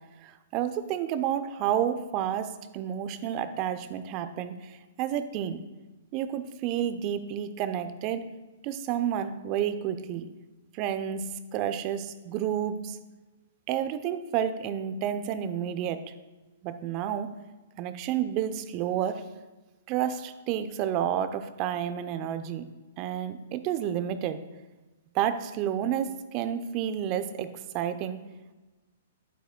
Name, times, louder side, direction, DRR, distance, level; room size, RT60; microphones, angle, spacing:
voice 1, 0.2-5.6 6.1-8.2 8.6-10.3 10.7-11.2 11.5-13.0 13.7-16.0 16.6-17.3 17.8-19.2 19.9-22.6 23.0-24.4 25.1-28.2, right 10 dB, 40° right, 11 dB, 0.6 m, -30 dB
11.5 x 8.2 x 2.3 m, 1.2 s
hypercardioid pair, 120°, 0 cm